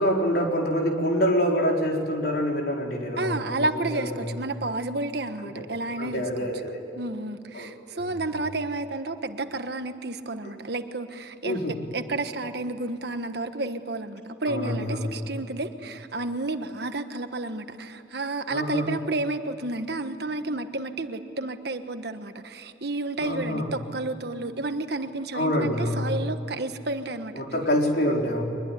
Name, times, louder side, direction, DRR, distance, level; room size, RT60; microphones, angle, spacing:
voice 1, 0.0-4.4 5.4-5.5 6.0-6.8 7.5-8.1 11.4-11.8 14.5-15.2 18.5-18.9 23.2-23.7 25.3-26.1 27.3-28.4, equal, 55° left, 0 dB, 4.3 m, -26 dB
voice 2, 3.2-6.5 7.0-11.6 11.9-27.3, right 2 dB, 60° right, 8 dB, 1.4 m, -31 dB
23.5 x 21.5 x 10.0 m, 2.8 s
head